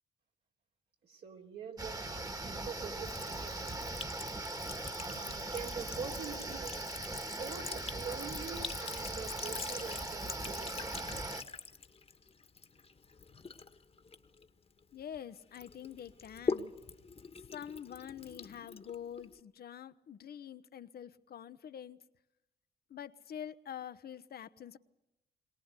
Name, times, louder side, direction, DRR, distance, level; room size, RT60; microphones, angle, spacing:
voice 1, 1.0-3.8 5.0-6.8 7.3-11.1, right 6 dB, 70° right, 3.4 m, -45 dB
sound 1, 1.8-11.4, right 2 dB, 20° right, 1.7 m, -40 dB
Sink (filling or washing) / Trickle dribble, 3.0-15.2 15.5-19.4, left 4 dB, 35° left, 1.5 m, -44 dB
voice 2, 14.9-16.7 17.4-22.0 22.9-24.8, left 9 dB, 60° left, 0.9 m, -46 dB
22.5 x 18.5 x 8.3 m
supercardioid pair, 60°, 18 cm